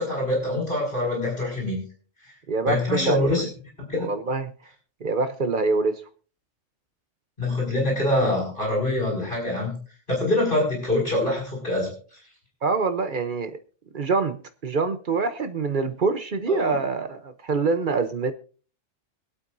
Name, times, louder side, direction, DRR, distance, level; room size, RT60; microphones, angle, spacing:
voice 1, 0.0-1.8 2.7-3.4 3.9-4.1 7.4-9.8 10.1-11.9 16.5-16.7, left 1 dB, 40° left, 5.9 m, -24 dB
voice 2, 2.5-3.5 4.0-4.5 5.0-6.0 12.6-13.6 13.9-18.3, right 4 dB, 45° right, 0.8 m, -25 dB
25.0 x 8.5 x 2.6 m
omnidirectional pair, 1.3 m